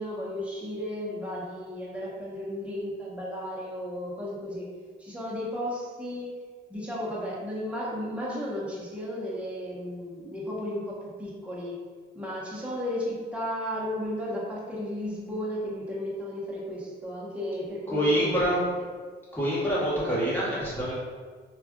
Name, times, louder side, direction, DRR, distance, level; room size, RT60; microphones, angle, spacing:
voice 1, 0.0-4.7 5.0-6.3 6.7-11.7 12.1-18.9, left 1 dB, 5° right, -6 dB, 0.9 m, -34 dB
voice 2, 17.9-18.6 19.3-20.9, equal, 10° left, -9 dB, 1.4 m, -26 dB
3.2 x 2.4 x 2.3 m, 1.5 s
cardioid pair, 90°, 20 cm